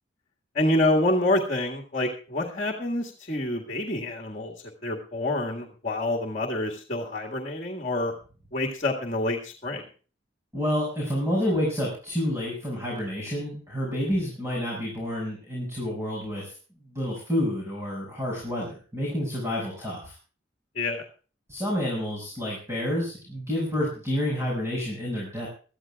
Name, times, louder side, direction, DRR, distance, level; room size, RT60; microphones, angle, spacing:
voice 1, 0.5-4.6 4.8-8.1 8.5-9.8 20.8-21.0, left 1 dB, 40° left, 0 dB, 1.9 m, -27 dB
voice 2, 10.5-16.5 16.8-20.1 21.5-25.5, equal, 15° right, -5 dB, 6.1 m, -29 dB
23.5 x 13.5 x 2.4 m, 0.38 s
head